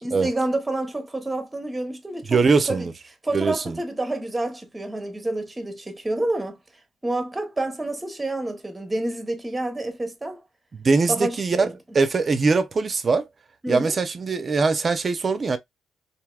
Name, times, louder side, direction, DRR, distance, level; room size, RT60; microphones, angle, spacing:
voice 1, 0.0-2.4 2.7-2.9 3.2-6.6 7.0-10.4 11.1-11.7 13.6-14.0, right 2 dB, 15° right, 1.0 m, -28 dB
voice 2, 2.3-2.9 3.3-3.8 10.7-11.7 11.9-13.3 13.7-15.6, right 4 dB, 40° right, 0.7 m, -21 dB
3.4 x 2.6 x 2.3 m
cardioid pair, 90°, 0 cm